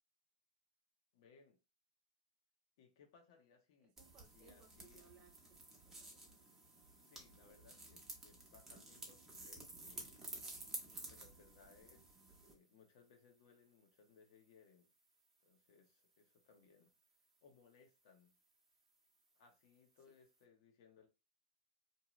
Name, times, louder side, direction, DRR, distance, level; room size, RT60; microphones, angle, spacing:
voice 1, 1.1-1.6 2.8-4.0 4.3-5.0 7.0-10.2 11.0-12.1 12.4-14.9 15.4-16.9 17.4-18.4 19.3-21.1, left 5 dB, 60° left, 0.9 m, -67 dB
voice 2, 3.8-5.3 5.7-6.2 20.1-20.2, right 7 dB, 35° right, 0.6 m, -67 dB
sound 1, 4.0-12.5, right 2 dB, 10° right, 0.9 m, -53 dB
2.7 x 2.2 x 3.0 m
hypercardioid pair, 125°, 3 cm